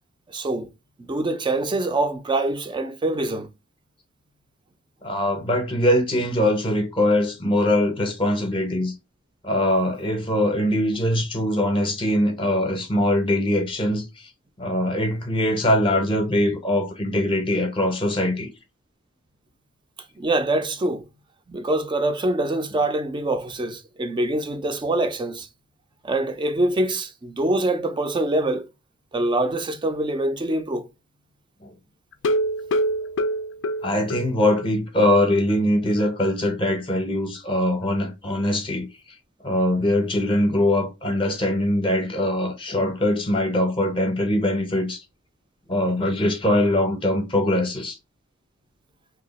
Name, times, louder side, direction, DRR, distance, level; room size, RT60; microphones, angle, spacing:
voice 1, 0.3-0.7 1.0-3.5 20.2-21.0 21.5-25.5 26.0-28.7 29.1-30.9, right 2 dB, 20° right, 0.4 m, -24 dB
voice 2, 5.0-8.9 9.4-14.3 14.6-18.5 31.6-31.7 33.8-38.9 39.4-45.0 45.7-48.0, left 1 dB, 25° left, 0.6 m, -22 dB
sound 1, 32.1-34.7 35.0-35.1 35.5-35.6 36.0-36.1, equal, 60° left, 0.4 m, -25 dB
2.8 x 2.3 x 4.0 m
head